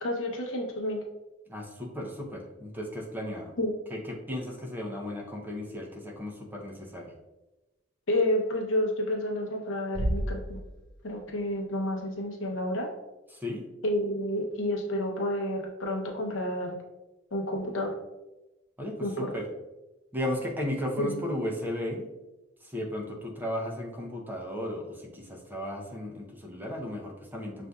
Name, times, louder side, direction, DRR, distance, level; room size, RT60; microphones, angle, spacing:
voice 1, 0.0-1.0 3.6-3.8 8.1-10.6 11.0-12.9 13.8-16.8 17.3-18.0 19.0-19.3 21.0-21.3, left 1 dB, 80° left, 1 dB, 0.8 m, -30 dB
voice 2, 1.5-3.5 3.9-7.1 13.4-13.6 18.8-19.5 20.1-22.1 22.6-27.7, left 1 dB, 10° right, -1 dB, 0.6 m, -35 dB
sound 1, 9.9-11.4, right 1 dB, 20° left, 1.0 m, -32 dB
6.5 x 2.5 x 2.3 m, 1.0 s
head